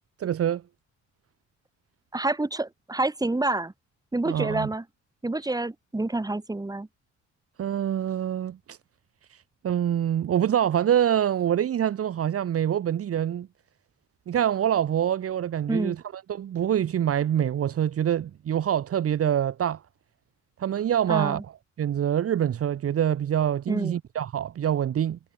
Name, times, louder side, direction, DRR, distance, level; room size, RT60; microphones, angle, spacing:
voice 1, 0.2-0.6 4.3-4.7 7.6-8.8 9.6-13.5 14.3-16.0 16.3-19.8 20.6-21.4 21.8-25.2, right 10 dB, 50° right, 1.0 m, -25 dB
voice 2, 2.1-3.7 4.1-4.8 5.2-6.9 15.7-16.0 21.1-21.4 23.7-24.0, right 2 dB, 10° right, 2.4 m, -28 dB
cardioid pair, 90°, 30 cm